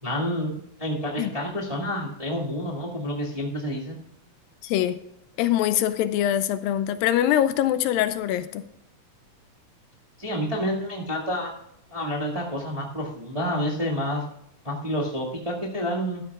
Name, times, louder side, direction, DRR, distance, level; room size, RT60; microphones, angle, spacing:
voice 1, 0.0-4.0 10.2-11.5 11.9-14.2 14.6-16.2, equal, 15° right, -3 dB, 1.1 m, -29 dB
voice 2, 4.6-5.0 5.4-8.6, left 11 dB, 85° left, 11 dB, 2.4 m, -23 dB
14.5 x 12.0 x 2.4 m, 0.77 s
omnidirectional pair, 4.2 m